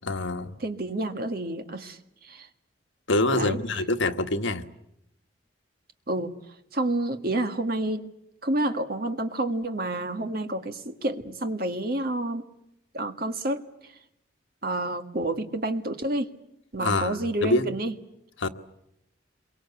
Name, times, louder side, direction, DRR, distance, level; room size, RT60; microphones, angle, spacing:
voice 1, 0.0-0.6 3.1-4.6 16.8-17.7 18.4-18.5, left 2 dB, 80° left, 7 dB, 1.5 m, -25 dB
voice 2, 0.6-2.5 3.3-3.6 6.1-6.4 6.7-8.0 8.4-12.4 12.9-13.6 14.6-16.3 16.7-17.9, right 1 dB, 50° right, 7 dB, 1.7 m, -29 dB
27.5 x 23.5 x 8.3 m, 0.84 s
head